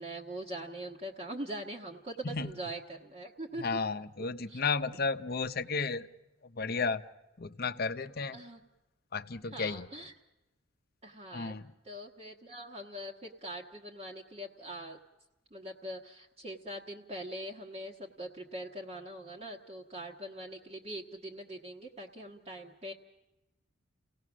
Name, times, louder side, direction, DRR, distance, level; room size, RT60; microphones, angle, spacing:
voice 1, 0.0-3.6 4.5-4.6 8.3-8.6 9.5-10.1 11.0-11.6 11.8-15.0 15.5-22.9, right 1 dB, 30° right, 0 dB, 1.2 m, -42 dB
voice 2, 3.6-6.1 6.4-7.0 7.4-8.4 9.1-9.9 11.3-11.7, left 4 dB, 50° left, 11 dB, 0.8 m, -33 dB
30.0 x 17.5 x 6.2 m, 1.0 s
head